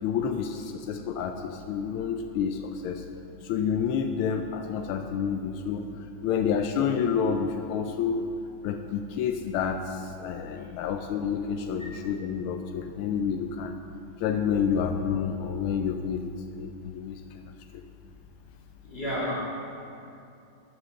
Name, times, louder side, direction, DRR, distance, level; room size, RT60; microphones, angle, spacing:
voice 1, 0.0-3.0 3.4-5.9 6.2-8.2 8.6-13.8 14.2-17.4 17.7-17.8, left 7 dB, 85° left, 6 dB, 1.5 m, -29 dB
voice 2, 18.8-19.3, equal, 25° left, -7 dB, 3.1 m, -32 dB
12.5 x 6.4 x 6.4 m, 2.6 s
omnidirectional pair, 2.3 m